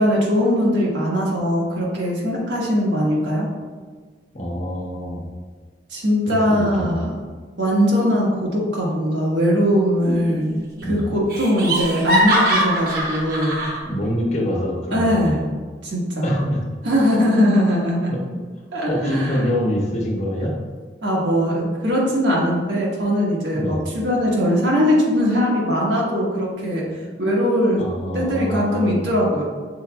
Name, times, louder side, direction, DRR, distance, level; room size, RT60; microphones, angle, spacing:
voice 1, 0.0-3.5 5.9-7.2 7.6-10.5 10.9-13.5 14.9-15.4 15.8-16.3 16.8-18.1 18.7-19.5 21.0-26.9 27.2-27.8 28.1-29.4, equal, 90° right, -4 dB, 1.3 m, -20 dB
voice 2, 4.3-5.2 6.3-7.1 10.8-11.2 13.9-15.4 16.2-16.6 18.1-18.2 18.9-20.5 23.5-23.9 27.8-29.1, equal, 40° left, -2 dB, 0.9 m, -25 dB
Laughter, 10.0-10.5 10.8-10.9 11.3-13.8, equal, 60° right, 1.0 m, -22 dB
6.0 x 3.9 x 2.2 m, 1.5 s
head